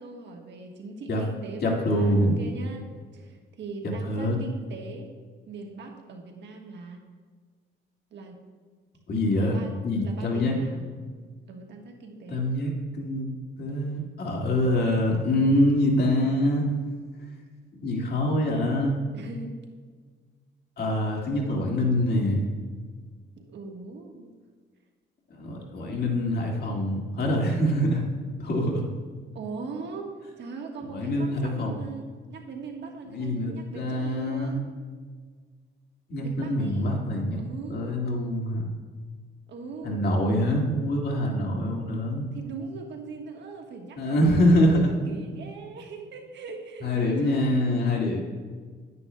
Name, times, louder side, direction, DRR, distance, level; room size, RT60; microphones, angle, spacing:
voice 1, 0.0-5.1 5.5-7.0 8.1-8.4 9.4-9.7 10.0-10.9 11.5-12.5 19.1-19.5 23.4-24.3 29.3-34.7 36.2-37.1 37.4-37.9 39.5-40.1 42.3-47.6, right 4 dB, 65° right, 2 dB, 1.3 m, -40 dB
voice 2, 1.6-2.4 4.1-4.4 9.1-10.6 12.3-13.3 13.6-16.7 17.8-19.0 20.8-22.4 25.3-28.0 28.4-28.8 30.9-31.8 33.1-34.6 36.1-37.4 37.7-38.7 39.8-42.3 44.0-44.9 46.8-48.2, left 1 dB, 50° left, -1 dB, 1.9 m, -25 dB
11.0 x 9.6 x 2.2 m, 1.5 s
cardioid pair, 90°, 20 cm